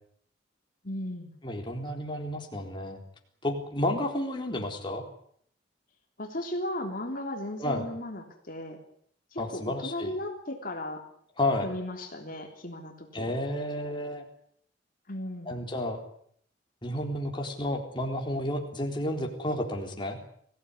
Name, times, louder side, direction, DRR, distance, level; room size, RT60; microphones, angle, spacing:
voice 1, 0.8-1.3 6.2-8.8 9.3-11.0 11.6-13.4 15.1-15.6, left 1 dB, 50° left, 3 dB, 3.4 m, -36 dB
voice 2, 1.4-3.0 3.4-5.0 7.6-7.9 9.4-10.1 11.4-11.7 13.1-14.2 15.5-16.0 16.8-20.2, left 1 dB, 25° left, 1 dB, 4.0 m, -31 dB
24.5 x 16.5 x 9.9 m, 0.65 s
head